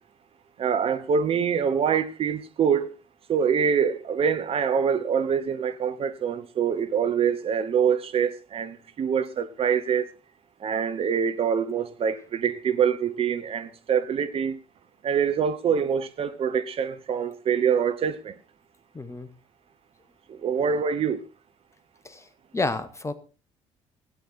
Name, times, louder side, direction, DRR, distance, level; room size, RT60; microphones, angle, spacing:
voice 1, 0.6-2.9 3.3-10.1 10.6-14.6 15.0-18.3 20.4-21.2, right 7 dB, 40° right, 0.9 m, -25 dB
voice 2, 18.9-19.3 22.0-23.1, left 3 dB, 20° left, 1.5 m, -30 dB
16.5 x 9.4 x 4.2 m
figure-of-eight pair, 50°, 15 cm